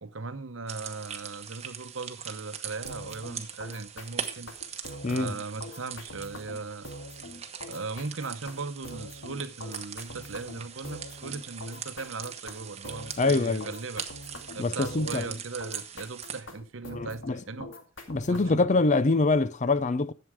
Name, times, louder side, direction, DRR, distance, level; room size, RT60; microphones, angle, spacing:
voice 1, 0.0-4.5 5.1-6.9 7.7-14.1 14.5-17.7 18.3-18.7, right 4 dB, 70° right, 0.9 m, -38 dB
sound 1, 0.7-16.4, right 8 dB, 30° right, 1.1 m, -41 dB
sound 2, 2.8-18.7, left 1 dB, 65° left, 2.4 m, -44 dB
voice 2, 13.2-13.7 14.6-15.2 16.9-17.4 18.1-20.1, left 3 dB, 35° left, 0.5 m, -24 dB
11.0 x 7.7 x 4.8 m
head